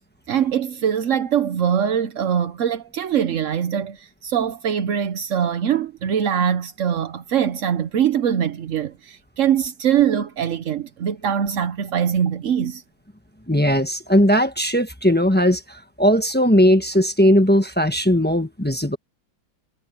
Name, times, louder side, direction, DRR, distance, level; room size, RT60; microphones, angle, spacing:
voice 1, 0.3-12.8, right 8 dB, 60° right, 0.8 m, -22 dB
voice 2, 13.5-15.6 16.0-19.0, equal, 5° left, 0.9 m, -18 dB
omnidirectional pair, 2.3 m